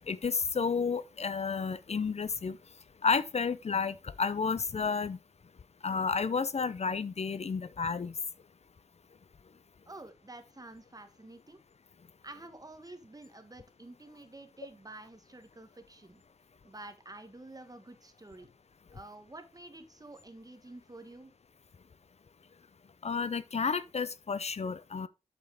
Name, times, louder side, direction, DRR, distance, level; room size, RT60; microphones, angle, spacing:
voice 1, 0.0-2.6 3.0-5.2 5.8-8.1 23.0-25.1, left 5 dB, 65° left, 0.5 m, -31 dB
voice 2, 9.9-11.6 12.2-16.2 16.6-18.5 18.9-21.3, right 2 dB, 30° right, 1.5 m, -49 dB
7.7 x 6.8 x 3.5 m
wide cardioid pair, 65°, 12 cm